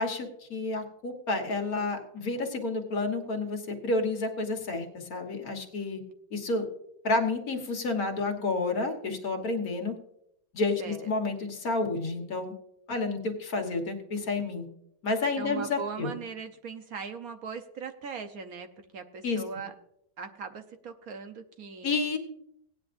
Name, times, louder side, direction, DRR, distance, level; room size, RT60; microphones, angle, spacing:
voice 1, 0.0-6.0 6.3-6.7 7.0-10.0 10.5-12.5 12.9-14.7 15.0-16.2 19.2-19.4 21.8-22.2, left 3 dB, 60° left, 3 dB, 1.8 m, -30 dB
voice 2, 10.8-11.1 15.4-18.7 18.9-19.7 20.2-21.9, right 5 dB, 65° right, 7 dB, 1.2 m, -39 dB
17.5 x 9.8 x 2.6 m, 0.77 s
omnidirectional pair, 1.8 m